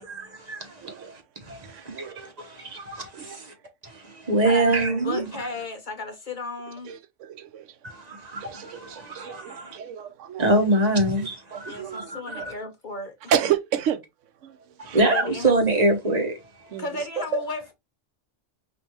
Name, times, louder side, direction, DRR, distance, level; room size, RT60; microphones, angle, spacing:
voice 1, 0.0-3.5 3.8-5.3 7.8-9.8 10.4-12.5 14.8-16.4, right 2 dB, 35° right, 1.1 m, -25 dB
voice 2, 0.8-1.2 1.5-2.4 3.1-3.4 6.8-7.8 8.4-10.8 11.5-12.5 13.3-15.0 16.7-17.0, right 9 dB, 85° right, 0.9 m, -31 dB
voice 3, 4.4-7.0 11.6-13.3 15.0-15.5 16.8-17.7, left 2 dB, 50° left, 0.7 m, -35 dB
5.2 x 2.6 x 3.0 m
omnidirectional pair, 1.2 m